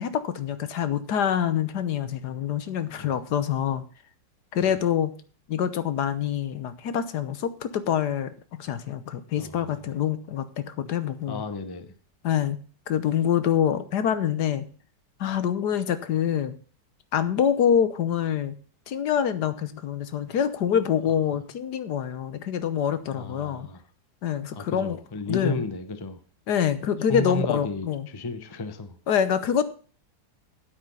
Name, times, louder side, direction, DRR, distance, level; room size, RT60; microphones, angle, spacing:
voice 1, 0.0-3.8 4.5-5.1 5.5-11.4 12.2-12.6 12.9-14.6 15.2-16.5 17.1-18.5 18.9-23.7 24.2-25.0 25.3-25.6 26.5-28.1 29.1-29.6, left 8 dB, 70° left, 13 dB, 1.5 m, -26 dB
voice 2, 9.4-9.9 11.3-11.9 23.1-23.8 24.5-26.2 27.1-29.0, left 2 dB, 20° left, 10 dB, 0.6 m, -33 dB
9.0 x 8.5 x 5.4 m, 0.41 s
omnidirectional pair, 1.9 m